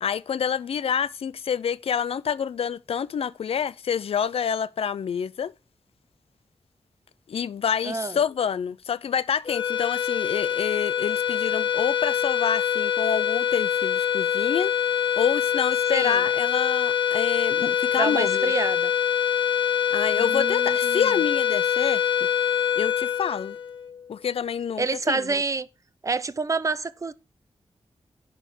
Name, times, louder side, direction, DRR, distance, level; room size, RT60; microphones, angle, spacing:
voice 1, 0.0-5.5 7.3-14.7 15.2-18.5 19.9-22.1 22.8-23.6 24.1-25.4, left 7 dB, 75° left, 0.4 m, -27 dB
voice 2, 7.8-8.2 15.9-16.2 18.0-18.9 20.1-21.2 24.8-25.7 26.0-27.1, right 4 dB, 35° right, 0.6 m, -28 dB
sound 1, 9.5-24.0, left 9 dB, 55° left, 1.1 m, -24 dB
11.0 x 3.8 x 6.9 m
wide cardioid pair, 145°, 10 cm